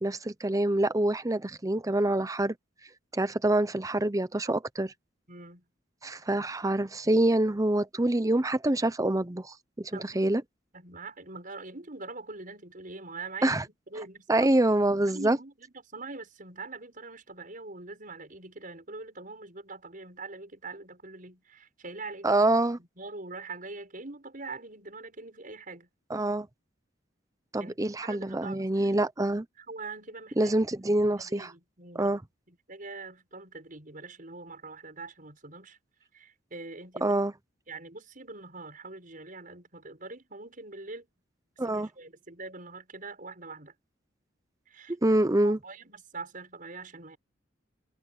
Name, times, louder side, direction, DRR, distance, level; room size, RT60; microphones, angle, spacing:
voice 1, 0.0-2.5 3.1-4.9 6.0-10.4 13.4-13.6 14.3-15.4 22.2-22.8 26.1-26.5 27.5-29.5 30.4-31.5 32.0-32.2 37.0-37.3 41.6-41.9 45.0-45.6, right 1 dB, 20° right, 0.7 m, -26 dB
voice 2, 5.3-5.6 9.9-10.2 10.7-13.6 13.9-14.5 15.0-22.5 22.8-25.9 27.6-28.9 29.6-30.5 31.2-35.8 36.1-37.2 37.7-41.1 41.6-43.7 44.7-47.2, right 3 dB, 45° right, 6.8 m, -43 dB
head